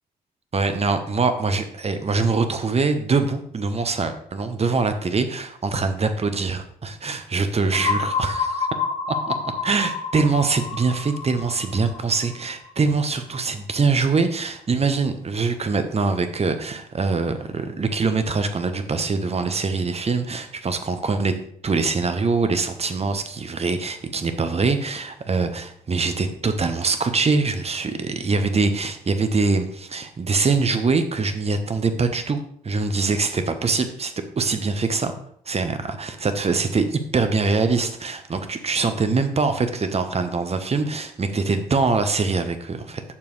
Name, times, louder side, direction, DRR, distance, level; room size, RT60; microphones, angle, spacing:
voice 1, 0.5-8.5 9.3-9.4 9.6-21.3 21.6-32.4 32.6-35.1 35.5-43.0, right 4 dB, 35° right, 9 dB, 1.1 m, -23 dB
sound 1, 7.7-13.4, left 5 dB, 80° left, 1.4 m, -29 dB
8.5 x 6.8 x 3.3 m, 0.65 s
hypercardioid pair, 45°, 19 cm